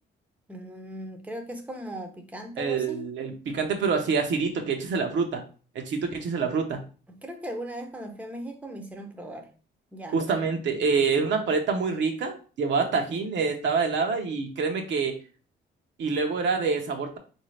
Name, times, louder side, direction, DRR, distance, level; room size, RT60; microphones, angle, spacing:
voice 1, 0.5-3.0 7.1-9.5 9.9-10.5, right 1 dB, 5° right, 4 dB, 0.7 m, -38 dB
voice 2, 2.6-5.4 5.7-6.8 10.1-15.1 16.0-17.2, right 5 dB, 65° right, 3 dB, 0.8 m, -26 dB
3.9 x 2.7 x 3.2 m, 0.37 s
cardioid pair, 90°, 20 cm